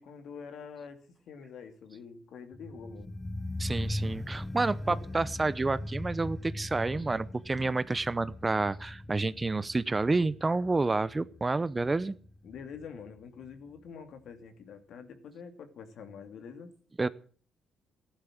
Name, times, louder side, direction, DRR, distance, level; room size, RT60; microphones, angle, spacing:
voice 1, 0.0-3.1 4.9-5.0 12.4-16.7, left 6 dB, 70° left, 8 dB, 2.6 m, -46 dB
sound 1, 2.5-13.5 13.8-13.9, left 1 dB, 10° left, 0.9 m, -40 dB
voice 2, 3.6-12.1 17.0-17.1, right 3 dB, 25° right, 16 dB, 0.8 m, -29 dB
15.0 x 11.5 x 7.6 m, 0.44 s
cardioid pair, 90°, 0 cm